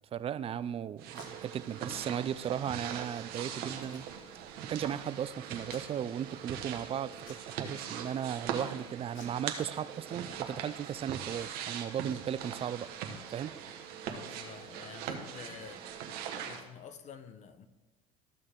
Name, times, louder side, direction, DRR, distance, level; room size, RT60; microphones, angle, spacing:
voice 1, 0.1-4.1 4.7-7.1 7.5-12.9 13.3-13.5, right 9 dB, 35° right, 0.4 m, -36 dB
Packing tape duct tape, 1.0-1.3 1.7-1.9 2.1-2.2 2.7-3.1 3.7-4.5 4.9-5.0 5.6-6.3 6.7-6.9 7.2-7.5 7.8-8.4 9.1-10.2 10.5-10.7 10.9-13.6, left 4 dB, 70° left, 1.9 m, -58 dB
sound 1, 1.0-16.6, right 8 dB, 60° right, 1.3 m, -41 dB
voice 2, 14.0-15.8 16.3-17.7, left 7 dB, 40° left, 0.9 m, -49 dB
13.5 x 6.4 x 3.6 m
hypercardioid pair, 80°, 18 cm